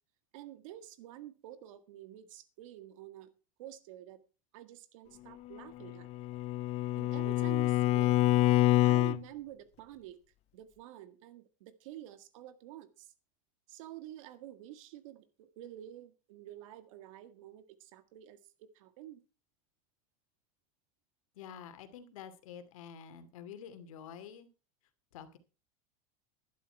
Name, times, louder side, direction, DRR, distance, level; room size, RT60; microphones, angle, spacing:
voice 1, 0.3-3.3 3.6-4.2 4.5-6.1 7.0-8.2 8.8-10.2 10.5-13.1 13.7-19.2, right 13 dB, 75° right, 12 dB, 1.8 m, -49 dB
Bowed string instrument, 5.8-9.2, left 15 dB, 40° left, 0.5 m, -27 dB
voice 2, 21.3-24.5 25.1-25.4, left 8 dB, 85° left, 10 dB, 2.5 m, -48 dB
11.5 x 11.5 x 4.6 m, 0.33 s
supercardioid pair, 135°, 17 cm